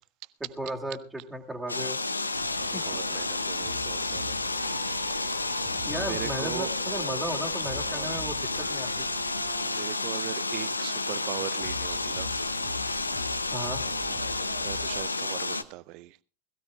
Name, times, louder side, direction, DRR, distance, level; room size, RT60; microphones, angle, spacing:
voice 1, 0.6-2.0 2.7-2.8 5.8-9.1 13.5-13.8, right 1 dB, 5° right, 2.4 m, -35 dB
sound 1, 1.7-15.6, left 3 dB, 80° left, 0.7 m, -31 dB
sound 2, 2.3-15.0, right 2 dB, 70° right, 2.8 m, -42 dB
voice 2, 2.8-4.4 6.0-6.7 7.8-8.2 9.4-12.3 13.8-16.2, right 18 dB, 40° right, 0.6 m, -40 dB
21.0 x 15.5 x 2.3 m
figure-of-eight pair, 90°, 0 cm